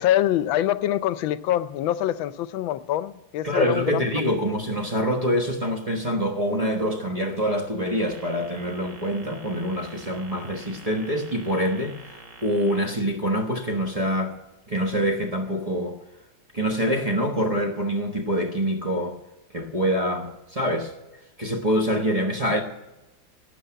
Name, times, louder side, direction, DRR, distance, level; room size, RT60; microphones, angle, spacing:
voice 1, 0.0-4.2, left 12 dB, 85° left, 14 dB, 1.4 m, -25 dB
voice 2, 3.4-14.4 14.7-16.0 16.5-19.2 19.5-20.9 21.4-22.6, equal, 25° right, -2 dB, 1.1 m, -25 dB
sound 1, 7.9-12.8, right 3 dB, 45° right, 1.4 m, -46 dB
12.0 x 8.2 x 9.0 m, 1.0 s
omnidirectional pair, 2.1 m